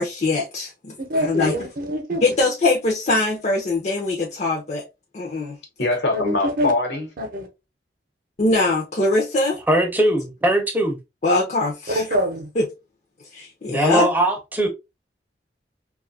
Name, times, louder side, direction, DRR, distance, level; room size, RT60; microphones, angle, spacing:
voice 1, 0.0-0.9 1.2-1.5 2.2-4.8 5.1-5.6 8.4-9.6 11.2-12.0 12.6-12.7 13.3-14.1, left 2 dB, 40° left, 0.5 m, -22 dB
voice 2, 1.0-2.2 6.1-6.7 7.2-7.5 11.9-12.5, equal, 50° right, 0.7 m, -25 dB
voice 3, 5.8-7.1, left 2 dB, 80° left, 1.1 m, -22 dB
voice 4, 9.7-11.0 13.7-14.7, right 1 dB, 10° right, 0.6 m, -20 dB
2.7 x 2.3 x 2.6 m
head